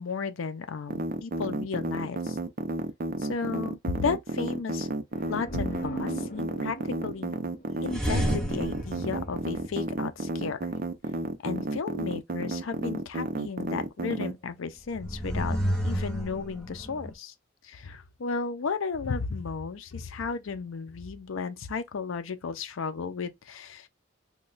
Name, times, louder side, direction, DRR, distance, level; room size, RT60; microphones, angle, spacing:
voice 1, 0.0-2.4 3.2-4.9 5.3-7.3 7.8-10.7 11.4-17.3 17.6-23.9, left 5 dB, 85° left, 0.5 m, -34 dB
sound 1, 0.9-14.3, right 2 dB, 45° right, 0.5 m, -31 dB
sound 2, 5.1-8.8, right 2 dB, 40° left, 1.0 m, -41 dB
sound 3, 7.9-10.3 14.8-17.1, equal, 5° left, 0.7 m, -31 dB
3.0 x 2.2 x 3.8 m
head